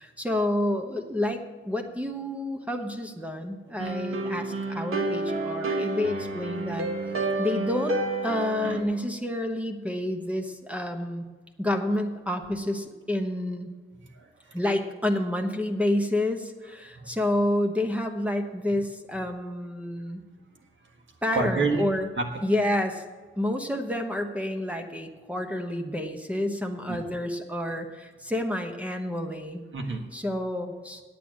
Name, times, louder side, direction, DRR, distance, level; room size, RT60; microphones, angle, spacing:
voice 1, 0.0-6.9 7.4-8.0 8.2-11.2 11.6-13.7 14.5-20.2 21.2-22.1 22.4-23.0 23.4-29.6 30.1-31.0, left 1 dB, 5° right, 4 dB, 1.0 m, -29 dB
sound 1, 3.8-8.8, right 2 dB, 85° right, 1.5 m, -30 dB
voice 2, 14.1-14.5 17.0-17.1 21.3-22.4 26.9-27.0 29.7-30.0, right 3 dB, 65° right, 3 dB, 1.6 m, -29 dB
9.1 x 8.6 x 7.6 m, 1.3 s
wide cardioid pair, 100°, 21 cm